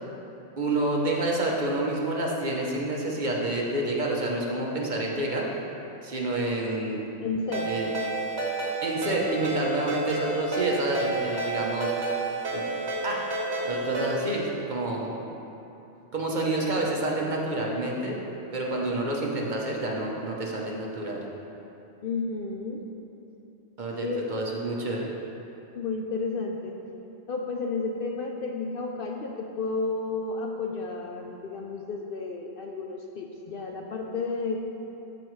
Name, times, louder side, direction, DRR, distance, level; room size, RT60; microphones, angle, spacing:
voice 1, 0.6-5.5 6.0-7.0 7.7-7.9 8.8-12.1 12.5-12.6 13.0-13.3 13.6-15.1 16.1-18.2 18.5-21.2 23.8-25.1, right 2 dB, 45° right, -2 dB, 0.9 m, -28 dB
voice 2, 7.2-7.7 22.0-22.8 24.0-24.2 25.7-26.7 27.3-34.7, left 4 dB, 60° left, 1 dB, 0.6 m, -32 dB
Ringtone, 7.5-14.4, right 2 dB, 70° right, 1.5 m, -31 dB
13.0 x 4.9 x 3.1 m, 2.9 s
omnidirectional pair, 1.2 m